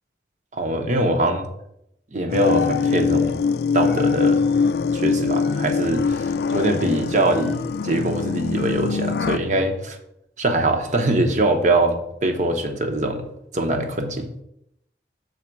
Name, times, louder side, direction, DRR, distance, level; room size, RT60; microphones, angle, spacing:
voice 1, 0.5-1.5 2.1-3.3 3.7-4.4 4.9-10.0 10.4-13.2 13.5-14.3, right 1 dB, 45° right, 5 dB, 0.9 m, -22 dB
sound 1, 2.3-9.4, left 5 dB, 65° left, 0.3 m, -22 dB
6.5 x 4.2 x 6.0 m, 0.79 s
head